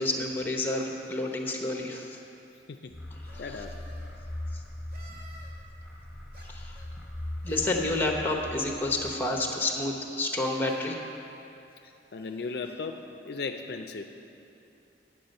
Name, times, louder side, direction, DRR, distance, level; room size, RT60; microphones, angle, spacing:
voice 1, 0.0-2.2 3.1-3.6 4.5-4.6 5.1-5.2 6.4-6.8 7.4-11.0, left 2 dB, 10° left, 2 dB, 0.8 m, -30 dB
sound 1, 2.9-9.4, left 1 dB, 5° right, 1.2 m, -40 dB
sound 2, 3.2-4.1 4.9-5.5 6.3-6.9 7.4-8.1 9.0-9.6 10.3-10.9 11.7-11.8 12.2-12.7, right 1 dB, 55° right, 2.0 m, -52 dB
voice 2, 3.4-3.8 12.1-14.1, left 4 dB, 65° left, 5 dB, 0.4 m, -36 dB
10.0 x 7.4 x 5.3 m, 2.8 s
head